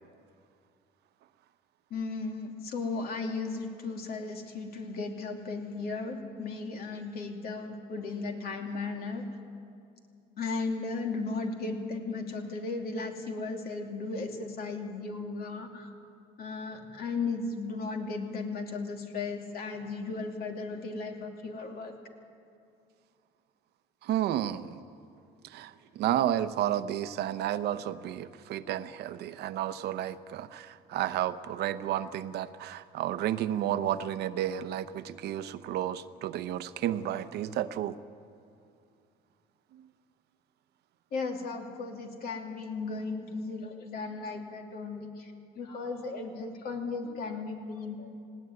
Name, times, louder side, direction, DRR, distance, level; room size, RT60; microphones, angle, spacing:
voice 1, 1.9-9.2 10.4-15.9 16.4-21.9 41.1-45.1 45.6-48.3, left 3 dB, 65° left, 3 dB, 2.8 m, -36 dB
voice 2, 24.0-24.8 25.4-38.0 39.7-39.8, right 11 dB, 75° right, 12 dB, 0.8 m, -32 dB
19.0 x 17.0 x 9.7 m, 2.5 s
cardioid pair, 110°, 17 cm